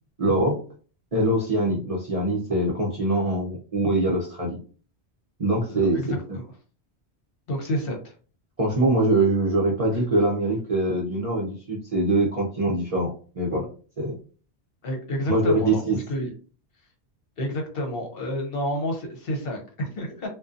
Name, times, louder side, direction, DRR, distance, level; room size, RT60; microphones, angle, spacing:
voice 1, 0.2-0.6 1.1-4.6 5.4-6.2 8.6-13.7 14.0-14.1 15.3-16.0, right 2 dB, 40° right, -3 dB, 0.5 m, -23 dB
voice 2, 5.7-6.4 7.5-8.1 9.9-10.0 14.8-16.3 17.4-20.3, equal, 60° left, 2 dB, 0.8 m, -30 dB
2.5 x 2.2 x 2.4 m, 0.39 s
omnidirectional pair, 1.1 m